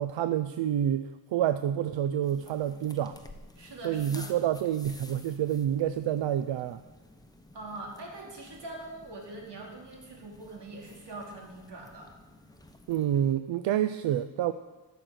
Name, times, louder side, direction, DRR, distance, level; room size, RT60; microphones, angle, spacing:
voice 1, 0.0-3.1 3.8-6.8 12.9-14.5, right 10 dB, 85° right, 12 dB, 0.5 m, -28 dB
sound 1, 2.2-13.3, left 1 dB, 10° left, 0.8 m, -52 dB
voice 2, 3.5-4.3 7.5-12.1, right 2 dB, 65° right, -1 dB, 2.9 m, -43 dB
14.0 x 6.6 x 6.3 m, 1.2 s
wide cardioid pair, 120°, 44 cm